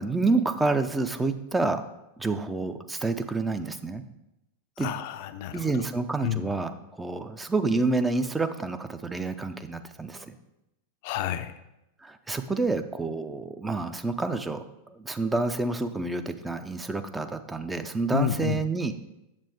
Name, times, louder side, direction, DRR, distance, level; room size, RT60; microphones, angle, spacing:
voice 1, 0.0-1.8 2.2-4.0 4.8-4.9 5.5-10.4 12.0-14.6 14.9-19.0, right 3 dB, 10° right, 9 dB, 0.5 m, -28 dB
voice 2, 4.8-5.9 6.2-6.5 11.0-11.6 18.1-18.6, left 13 dB, 50° left, 10 dB, 0.4 m, -30 dB
7.4 x 7.1 x 3.6 m, 0.90 s
figure-of-eight pair, 90°, 0 cm